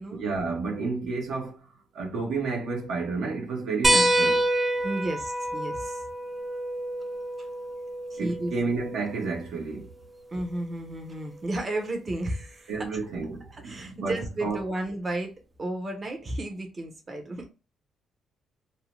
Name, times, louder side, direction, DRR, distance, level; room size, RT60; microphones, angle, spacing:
voice 1, 0.1-1.7 1.9-4.5 8.2-9.9 12.7-14.6, right 4 dB, 70° right, 0.9 m, -31 dB
sound 1, 3.8-8.9 10.5-10.6 12.2-12.3, right 1 dB, 15° right, 0.3 m, -27 dB
voice 2, 4.8-6.0 8.1-8.5 10.3-12.9 13.5-15.3 15.6-17.5, right 1 dB, 35° right, 0.7 m, -33 dB
2.7 x 2.1 x 3.0 m
cardioid pair, 90°, 0 cm